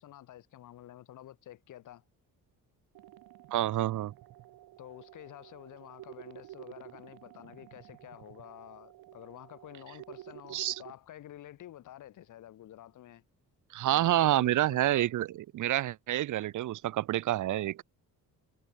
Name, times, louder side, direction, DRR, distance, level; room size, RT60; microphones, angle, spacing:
voice 1, 0.0-2.0 4.8-13.2 13.9-15.1, left 12 dB, 55° left, 1.2 m, -50 dB
sound 1, 2.9-10.9, right 14 dB, 80° right, 2.6 m, -51 dB
voice 2, 3.5-4.1 10.5-10.8 13.7-15.3 15.5-17.8, right 14 dB, 55° right, 0.7 m, -28 dB
cardioid pair, 145°, 36 cm